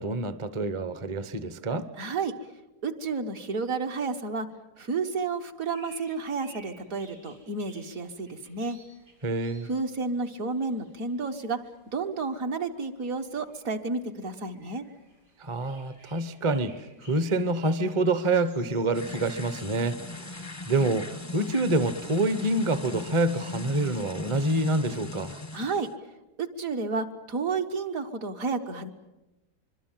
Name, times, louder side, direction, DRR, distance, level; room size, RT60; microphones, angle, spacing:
voice 1, 0.0-1.9 9.2-9.7 15.4-25.3, right 2 dB, 25° right, 12 dB, 0.8 m, -27 dB
voice 2, 2.0-2.3 2.8-4.5 4.8-8.8 9.7-11.6 11.9-14.8 25.3-25.9 26.4-28.9, right 4 dB, 60° right, 4 dB, 1.8 m, -31 dB
sound 1, 5.6-23.8, right 2 dB, 80° right, 7.4 m, -58 dB
sound 2, 18.9-25.9, left 3 dB, 15° left, 0.6 m, -39 dB
25.0 x 23.0 x 7.5 m, 0.99 s
omnidirectional pair, 1.7 m